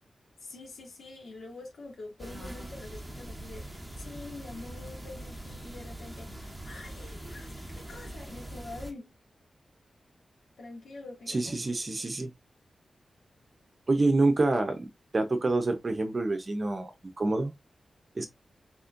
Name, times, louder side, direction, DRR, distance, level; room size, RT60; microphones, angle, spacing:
voice 1, 0.4-9.1 10.6-11.6, left 2 dB, 90° left, 2.1 m, -46 dB
sound 1, 2.2-8.9, right 1 dB, ahead, 1.4 m, -42 dB
voice 2, 11.3-12.3 13.9-14.9 15.1-16.9 17.2-17.5 18.2-18.3, right 2 dB, 30° right, 0.8 m, -27 dB
4.3 x 4.2 x 2.5 m
wide cardioid pair, 145°, 0 cm